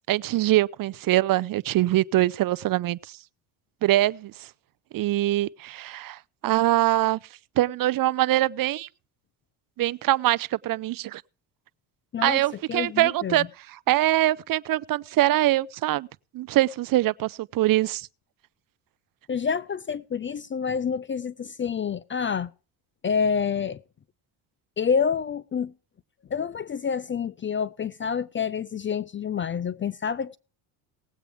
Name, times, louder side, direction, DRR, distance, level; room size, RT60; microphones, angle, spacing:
voice 1, 0.1-3.2 3.8-4.5 4.9-7.2 7.6-8.9 9.8-11.2 12.2-16.1 16.3-18.1, right 15 dB, 45° right, 0.6 m, -23 dB
voice 2, 12.7-13.5 19.3-22.5 23.0-23.8 24.8-25.7 26.3-30.4, left 6 dB, 25° left, 0.5 m, -28 dB
19.0 x 8.2 x 3.5 m
supercardioid pair, 80°, 47 cm